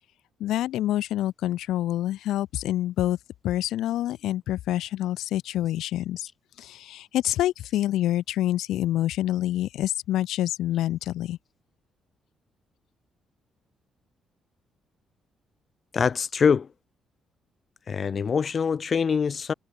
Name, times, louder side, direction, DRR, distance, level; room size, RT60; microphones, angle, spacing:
voice 1, 0.4-3.2 3.4-6.3 6.6-11.4, left 13 dB, 85° left, 4.3 m, -27 dB
voice 2, 15.9-16.7 17.9-19.5, left 6 dB, 45° left, 3.2 m, -24 dB
cardioid pair, 90°, 0 cm